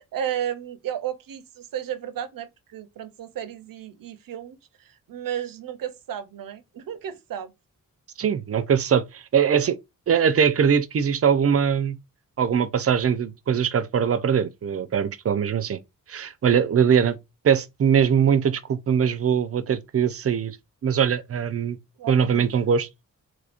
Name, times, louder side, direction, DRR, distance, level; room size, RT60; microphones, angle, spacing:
voice 1, 0.0-7.5 22.0-22.5, right 10 dB, 90° right, 0.6 m, -33 dB
voice 2, 8.2-9.8 10.1-12.0 12.4-15.8 16.1-17.2 17.4-20.6 20.8-21.8 22.1-22.9, right 7 dB, 45° right, 0.5 m, -21 dB
3.5 x 3.2 x 2.4 m
cardioid pair, 90°, 33 cm